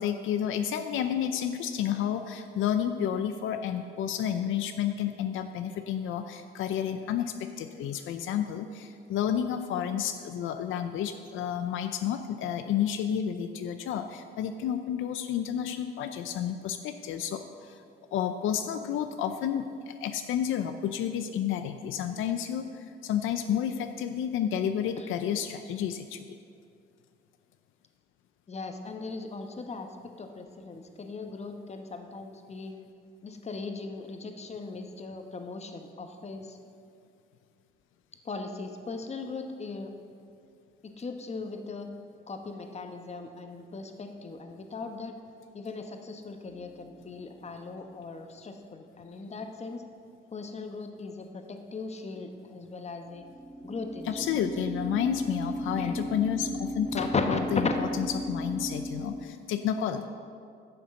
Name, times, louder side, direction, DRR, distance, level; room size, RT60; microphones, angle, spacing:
voice 1, 0.0-17.8 18.1-26.2 54.1-60.1, left 9 dB, 85° left, 8 dB, 0.5 m, -31 dB
voice 2, 28.5-32.7 33.2-36.6 38.2-39.9 40.8-41.9 42.3-45.2 45.5-49.8 50.3-53.2 53.6-54.3 55.8-56.0 57.0-57.8, left 3 dB, 35° left, 6 dB, 1.1 m, -38 dB
sound 1, 46.5-47.0 53.1-59.3, equal, 50° right, 2.1 m, -35 dB
10.5 x 6.8 x 6.4 m, 2.3 s
cardioid pair, 90°, 20 cm